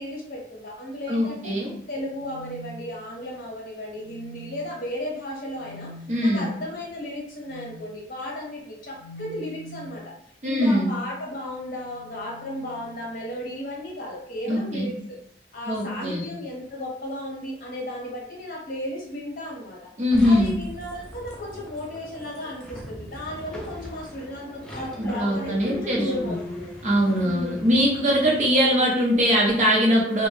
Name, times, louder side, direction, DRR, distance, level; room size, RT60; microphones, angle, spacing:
voice 1, 0.0-1.5 1.9-5.9 6.2-10.1 10.4-14.9 15.5-19.8 20.2-26.7 27.2-27.7, left 1 dB, 50° left, -2 dB, 0.8 m, -34 dB
voice 2, 1.1-1.7 6.1-6.5 10.4-10.9 14.5-14.9 15.7-16.2 20.0-20.5 25.0-26.4 26.8-30.3, equal, 40° right, -2 dB, 0.7 m, -21 dB
sound 1, 2.0-3.4 4.0-4.7 5.6-6.0 7.4-7.8 9.0-10.0 11.5-13.3 14.4-14.9 16.1-16.3, right 1 dB, 85° left, 0.4 m, -44 dB
sound 2, 20.1-28.8, equal, 5° left, 0.3 m, -40 dB
2.1 x 2.0 x 3.1 m, 0.66 s
head